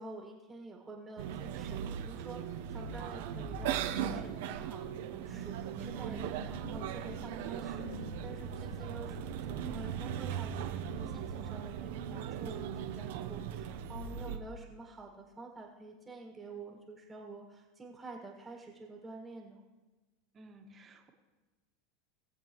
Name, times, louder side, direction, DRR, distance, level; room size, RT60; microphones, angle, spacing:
voice 1, 0.0-9.2 9.5-19.6, right 3 dB, 15° right, 0 dB, 1.9 m, -48 dB
sound 1, 1.2-14.4, right 8 dB, 70° right, 0.9 m, -38 dB
voice 2, 20.3-21.1, right 2 dB, 30° right, 3 dB, 1.7 m, -56 dB
20.5 x 7.5 x 3.1 m, 1.2 s
hypercardioid pair, 105°, 0 cm